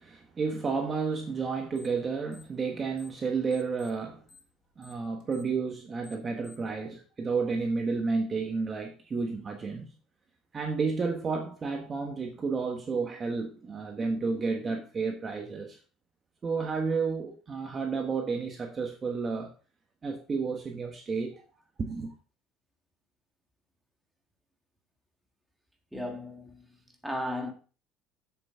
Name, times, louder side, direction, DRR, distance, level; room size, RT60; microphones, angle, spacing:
voice 1, 0.0-4.2 4.8-9.9 10.5-15.8 16.4-19.5 20.0-21.4 21.8-22.1, right 4 dB, 25° right, 1.3 m, -31 dB
sound 1, 1.7-2.0 2.3-3.2 3.5-6.7, left 5 dB, 50° left, 3.6 m, -56 dB
voice 2, 25.9-26.8 27.0-27.5, left 1 dB, ahead, 1.8 m, -35 dB
8.0 x 7.3 x 4.4 m
cardioid pair, 145°, 0 cm